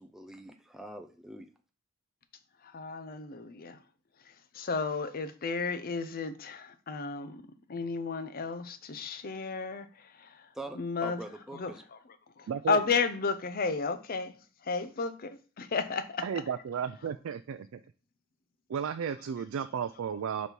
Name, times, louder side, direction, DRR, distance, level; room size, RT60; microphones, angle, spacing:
voice 1, 0.0-1.5 10.5-11.8, right 1 dB, ahead, 0.4 m, -44 dB
voice 2, 2.6-3.8 4.2-17.1, left 4 dB, 45° left, 0.6 m, -34 dB
voice 3, 12.5-12.8 16.2-17.8 18.7-20.5, right 7 dB, 75° right, 0.4 m, -34 dB
5.2 x 4.1 x 4.6 m
head